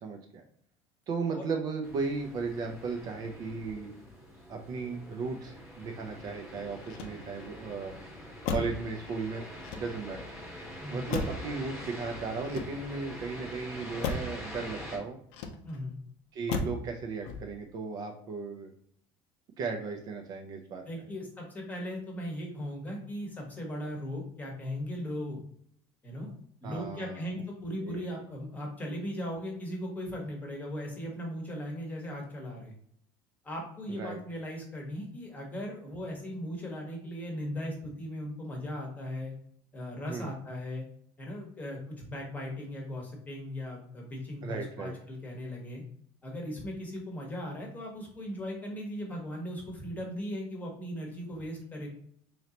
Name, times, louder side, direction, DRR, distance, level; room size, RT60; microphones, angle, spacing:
voice 1, 0.0-0.4 1.1-3.9 4.5-7.9 8.5-9.4 9.8-10.2 10.9-15.2 16.3-18.7 19.6-20.8 26.6-27.2 27.8-28.1 33.9-34.2 40.1-40.3 44.4-44.9, right 4 dB, 35° right, 3 dB, 0.5 m, -36 dB
sound 1, 1.8-15.0, left 1 dB, 5° right, 1.1 m, -45 dB
Motor vehicle (road), 6.8-7.6 8.4-8.9 9.6-10.2 11.1-11.6 12.3-13.1 14.0-14.4 15.3-15.9 16.5-16.9 17.2-17.7, left 4 dB, 80° left, 0.6 m, -35 dB
voice 2, 10.8-11.1 15.6-16.0 20.9-25.4 26.0-26.3 26.6-32.7 33.4-39.3 39.7-40.9 41.2-45.8 46.2-51.9, equal, 15° left, 0 dB, 1.0 m, -38 dB
3.8 x 3.2 x 2.8 m, 0.65 s
cardioid pair, 170°, 11 cm